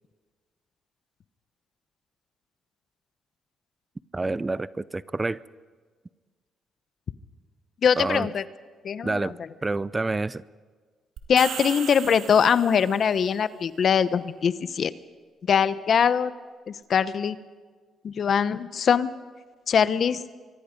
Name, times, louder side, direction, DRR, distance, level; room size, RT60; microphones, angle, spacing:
voice 1, 4.1-5.4 8.0-8.3 9.0-9.3 9.6-10.4, right 3 dB, 20° right, 18 dB, 0.5 m, -28 dB
voice 2, 7.8-8.4 8.8-9.3 11.3-14.9 15.5-16.3 16.7-17.4 18.0-19.1 19.7-20.2, left 7 dB, 55° left, 14 dB, 0.9 m, -22 dB
sound 1, 11.2-13.1, right 8 dB, 75° right, 2.4 m, -37 dB
24.0 x 24.0 x 5.3 m, 1.5 s
cardioid pair, 90°, 0 cm